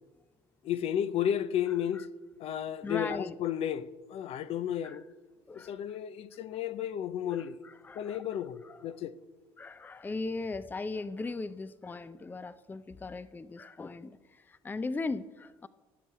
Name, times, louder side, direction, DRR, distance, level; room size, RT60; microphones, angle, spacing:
voice 1, 0.6-2.1 2.4-5.0 5.6-7.6 8.0-9.1, left 10 dB, 60° left, 0.6 m, -33 dB
voice 2, 2.8-3.4 4.8-5.0 5.5-6.0 7.3-8.2 8.6-9.0 9.6-15.7, left 3 dB, 15° left, 0.5 m, -38 dB
16.5 x 6.0 x 4.6 m
supercardioid pair, 80°, 12 cm